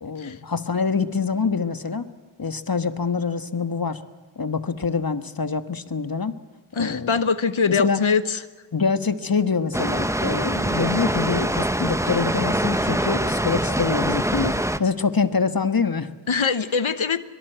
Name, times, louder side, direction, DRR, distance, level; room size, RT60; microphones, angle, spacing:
voice 1, 0.0-2.1 2.4-4.0 4.4-6.4 6.8-7.2 7.7-8.0 8.7-16.1, left 5 dB, 50° left, 10 dB, 1.5 m, -25 dB
voice 2, 6.7-8.4 16.3-17.2, left 5 dB, 80° left, 13 dB, 1.1 m, -23 dB
Water, 9.7-14.8, right 1 dB, 5° right, 1.0 m, -24 dB
23.5 x 23.0 x 8.1 m, 1.4 s
wide cardioid pair, 50°, 47 cm